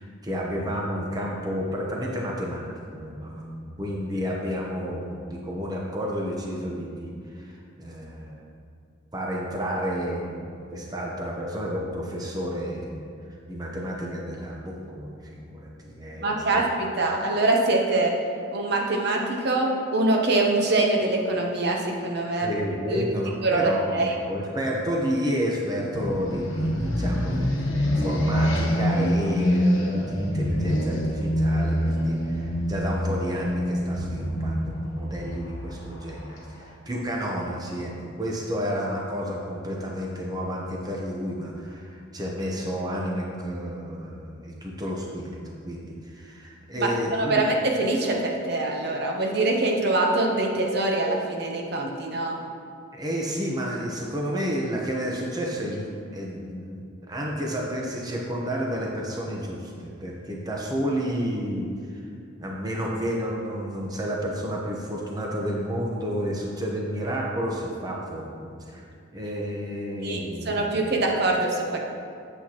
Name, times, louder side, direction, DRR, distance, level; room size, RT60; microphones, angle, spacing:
voice 1, 0.0-8.4 9.1-10.4 10.7-13.0 13.5-16.6 22.3-47.4 52.9-56.8 57.1-62.1 62.4-68.9 69.1-70.8, equal, 20° right, -2 dB, 0.8 m, -31 dB
voice 2, 16.1-18.1 18.5-22.5 22.9-23.0 23.4-24.1 46.7-52.4 70.0-70.2 70.5-71.8, right 2 dB, 55° right, 0 dB, 0.8 m, -24 dB
sound 1, 25.9-36.7, equal, 70° left, 1.2 m, -25 dB
8.5 x 7.9 x 2.9 m, 2.4 s
head